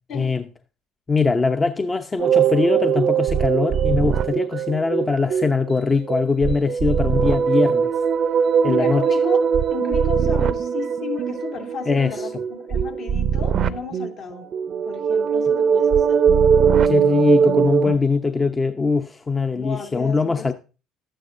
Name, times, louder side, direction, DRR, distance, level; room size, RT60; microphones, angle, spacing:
voice 1, 1.1-7.9 8.6-9.0 11.9-12.1 16.9-20.5, left 4 dB, 25° left, 0.7 m, -21 dB
sound 1, 2.2-5.8 6.1-17.9, right 7 dB, 50° right, 0.6 m, -20 dB
voice 2, 8.6-14.5 14.9-16.2 19.5-20.5, left 5 dB, 60° left, 2.5 m, -33 dB
12.5 x 10.0 x 2.7 m
hypercardioid pair, 65°, 0 cm